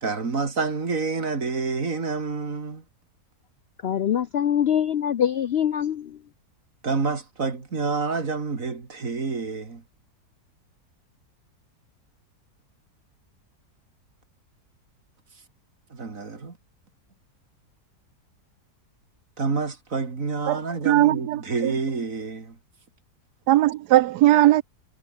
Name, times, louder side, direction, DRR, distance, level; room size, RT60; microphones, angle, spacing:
voice 1, 0.0-2.8 6.8-9.8 15.9-16.5 19.4-22.5, right 4 dB, 55° right, 3.0 m, -28 dB
voice 2, 3.8-6.2, left 9 dB, 60° left, 0.6 m, -24 dB
voice 3, 20.8-21.7 23.5-24.6, right 15 dB, 80° right, 1.1 m, -19 dB
omnidirectional pair, 1.7 m